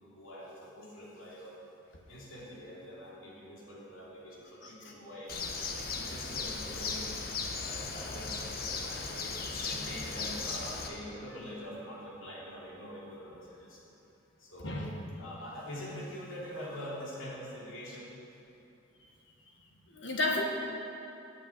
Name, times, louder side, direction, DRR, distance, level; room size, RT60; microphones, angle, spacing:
voice 1, 0.0-1.6 2.1-5.3 5.9-7.0 7.7-13.8 14.4-14.9 15.2-18.1, equal, 85° left, -5 dB, 2.8 m, -45 dB
Bird, 5.3-10.9, left 4 dB, 50° left, 1.0 m, -37 dB
voice 2, 14.6-14.9 19.9-20.4, left 2 dB, 65° left, 0 dB, 1.5 m, -31 dB
9.1 x 7.9 x 8.4 m, 2.9 s
head